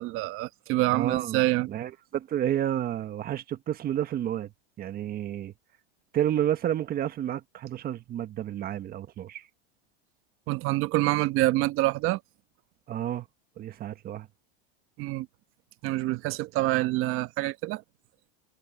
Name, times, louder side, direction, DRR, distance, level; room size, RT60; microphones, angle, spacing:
voice 1, 0.0-1.7 10.5-12.2 15.0-15.3 15.8-17.8, right 18 dB, 45° right, 1.2 m, -26 dB
voice 2, 0.9-4.5 4.8-5.5 6.1-9.5 12.9-13.3 13.6-14.3, right 11 dB, 30° right, 1.4 m, -30 dB
supercardioid pair, 130°, 30 cm